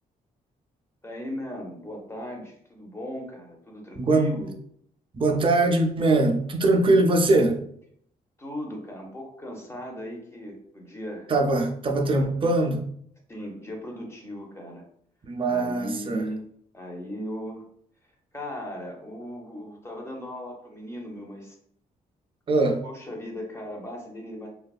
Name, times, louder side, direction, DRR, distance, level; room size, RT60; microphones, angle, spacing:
voice 1, 1.0-4.5 8.4-11.3 13.3-14.8 15.4-16.5 16.7-17.7 18.3-21.5 22.8-24.5, equal, 15° left, 0 dB, 0.7 m, -37 dB
voice 2, 3.9-4.5 5.1-7.6 11.3-12.9 15.2-16.3 22.5-22.8, right 2 dB, 35° right, 4 dB, 0.4 m, -22 dB
2.6 x 2.3 x 2.3 m, 0.66 s
cardioid pair, 80°, 16 cm